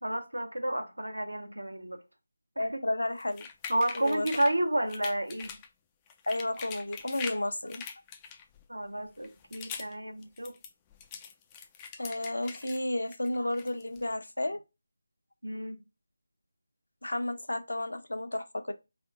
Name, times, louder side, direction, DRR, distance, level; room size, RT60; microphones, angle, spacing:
voice 1, 0.0-2.0 2.6-2.9 3.7-5.5 8.7-10.5 15.4-15.8, right 1 dB, 90° right, 1.2 m, -31 dB
voice 2, 2.6-3.5 3.9-4.3 6.3-7.8 12.0-14.6 17.0-18.7, left 1 dB, 75° left, 0.8 m, -32 dB
sound 1, 3.2-4.5 4.9-5.7 6.1-7.4 7.7-8.7 9.2-9.9 10.2-12.8 13.1-14.0, left 7 dB, 15° left, 0.3 m, -43 dB
4.3 x 3.4 x 2.7 m
figure-of-eight pair, 160°, 0 cm